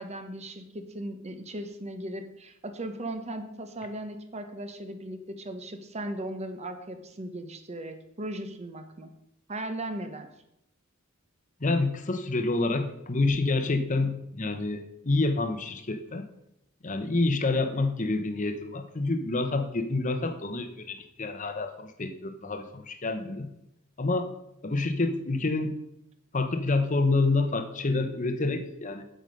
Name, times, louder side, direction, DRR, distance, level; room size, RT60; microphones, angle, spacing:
voice 1, 0.0-9.1 9.5-10.3, right 1 dB, 30° right, 8 dB, 1.0 m, -37 dB
voice 2, 11.6-16.3 16.8-23.5 24.0-24.3 24.6-25.7 26.3-29.0, left 3 dB, 35° left, 8 dB, 0.9 m, -28 dB
8.1 x 7.6 x 5.3 m, 0.83 s
head